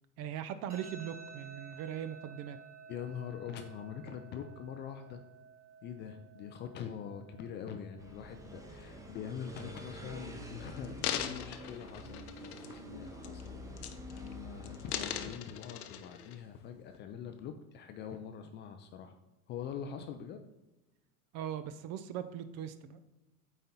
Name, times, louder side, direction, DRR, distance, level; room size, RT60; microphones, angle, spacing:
voice 1, 0.2-2.6 21.3-23.0, right 9 dB, 35° right, 12 dB, 0.4 m, -40 dB
sound 1, 0.7-13.7, right 6 dB, 80° right, 1.5 m, -56 dB
voice 2, 2.9-5.2 5.8-19.2 19.5-20.5, left 8 dB, 25° left, 7 dB, 0.3 m, -44 dB
sound 2, 8.0-15.3, left 1 dB, 5° right, 0.8 m, -47 dB
sound 3, 10.1-10.2 10.8-12.9 13.2-13.5 13.8-14.3 14.6-16.4 16.9-17.0, left 10 dB, 70° left, 0.7 m, -40 dB
8.6 x 4.1 x 4.1 m, 1.0 s
hypercardioid pair, 80°, 46 cm